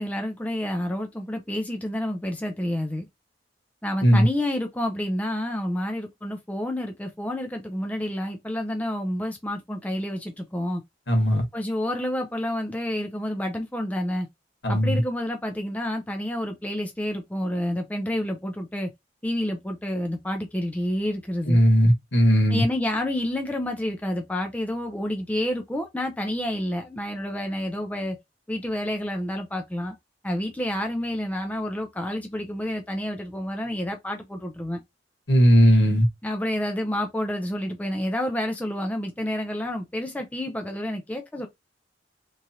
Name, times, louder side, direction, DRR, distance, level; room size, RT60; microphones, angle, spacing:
voice 1, 0.0-3.1 3.8-10.8 11.5-14.3 14.7-18.9 19.2-21.6 22.5-28.2 28.5-29.9 30.2-34.8 36.2-41.5, left 1 dB, 10° left, 0.4 m, -29 dB
voice 2, 11.1-11.4 14.6-15.0 21.5-22.6 35.3-36.0, equal, 75° left, 1.4 m, -18 dB
3.1 x 2.4 x 2.7 m
head